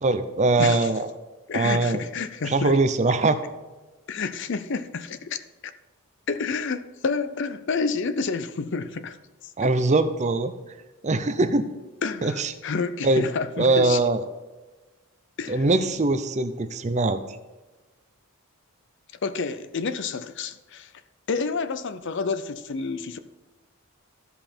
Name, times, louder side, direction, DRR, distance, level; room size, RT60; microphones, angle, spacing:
voice 1, 0.0-1.1 1.5-2.0 2.5-3.4 9.6-10.5 11.0-11.7 12.2-12.5 13.0-13.2 13.6-14.2 15.5-17.2, right 2 dB, 30° right, 10 dB, 0.6 m, -22 dB
voice 2, 0.6-0.9 1.5-2.8 4.1-5.4 6.3-9.2 9.6-9.7 12.0-14.0 15.4-15.6 19.2-20.9 21.3-23.2, left 4 dB, 55° left, 12 dB, 0.5 m, -29 dB
13.5 x 5.5 x 4.4 m, 1.2 s
head